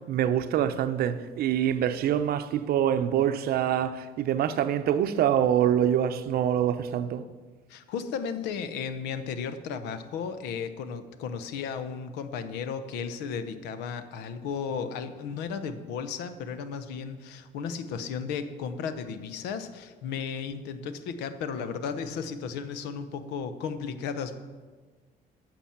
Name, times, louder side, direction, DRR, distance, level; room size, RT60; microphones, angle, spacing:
voice 1, 0.1-7.2, right 10 dB, 65° right, 0.6 m, -25 dB
voice 2, 7.7-24.4, left 6 dB, 90° left, 0.9 m, -34 dB
10.0 x 6.0 x 7.4 m
cardioid pair, 110°, 17 cm